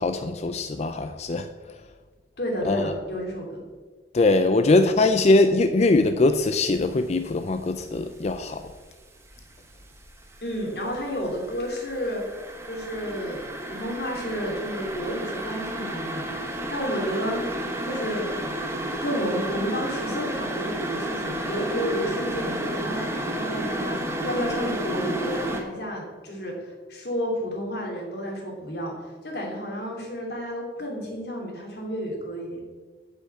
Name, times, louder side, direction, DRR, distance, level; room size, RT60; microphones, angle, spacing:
voice 1, 0.0-1.5 2.7-2.9 4.1-8.6, left 2 dB, 40° left, 8 dB, 0.4 m, -21 dB
voice 2, 2.4-3.6 10.4-12.2 12.7-17.4 17.8-18.3 19.0-24.0 24.2-28.9 29.2-32.6, equal, 65° left, 0 dB, 2.6 m, -31 dB
sound 1, 6.6-6.9 7.3-8.9 9.2-25.6, right 1 dB, 15° right, 1.0 m, -32 dB
8.3 x 5.8 x 7.9 m, 1.4 s
head